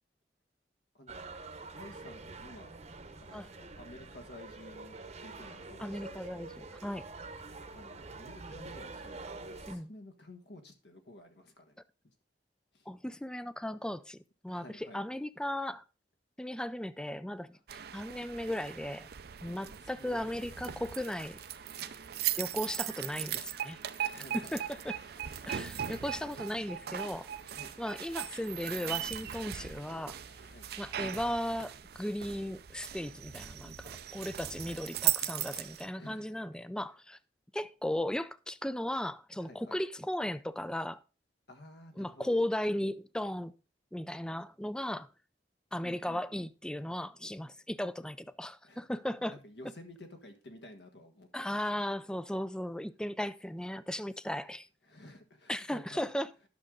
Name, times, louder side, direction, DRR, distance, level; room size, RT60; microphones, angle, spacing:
sound 1, 1.1-9.8, right 3 dB, 40° right, 1.0 m, -46 dB
voice 1, 1.7-2.8 3.2-6.6 7.7-11.8 12.7-12.9 14.5-15.0 19.4-20.8 21.7-22.0 24.0-24.6 27.5-27.7 30.4-30.9 34.4-34.8 36.0-36.4 39.4-39.8 41.5-42.3 45.8-46.5 48.6-48.8 49.2-52.0 54.8-56.0, left 1 dB, 70° left, 1.5 m, -53 dB
voice 2, 5.8-7.1 9.7-9.9 12.9-15.8 16.4-17.6 17.9-19.1 19.4-21.4 22.4-25.0 25.5-27.3 27.8-30.2 30.8-37.2 37.5-41.0 42.0-43.5 43.9-45.1 45.7-49.4 51.3-54.7 55.5-56.3, left 1 dB, 5° left, 0.4 m, -36 dB
sound 2, 17.7-35.9, right 11 dB, 60° right, 0.6 m, -38 dB
sound 3, 20.1-31.5, left 1 dB, 85° left, 3.6 m, -62 dB
11.0 x 6.4 x 3.7 m
head